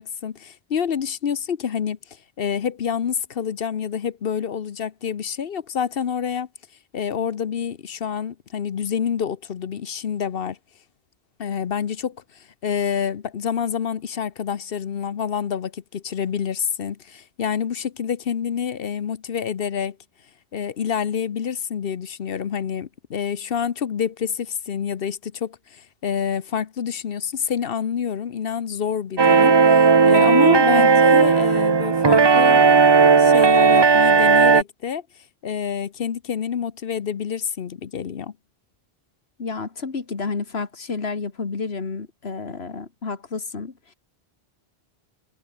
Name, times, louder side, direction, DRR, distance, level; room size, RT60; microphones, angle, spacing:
voice 1, 0.0-2.0 2.4-6.5 6.9-10.6 11.4-12.2 12.6-20.0 20.5-32.7 33.1-35.0 35.4-38.3, left 7 dB, 65° left, 1.1 m, -27 dB
sound 1, 29.2-34.6, right 5 dB, 30° right, 0.6 m, -15 dB
voice 2, 30.7-31.0 39.4-43.9, left 4 dB, 85° left, 2.2 m, -30 dB
omnidirectional pair, 1.0 m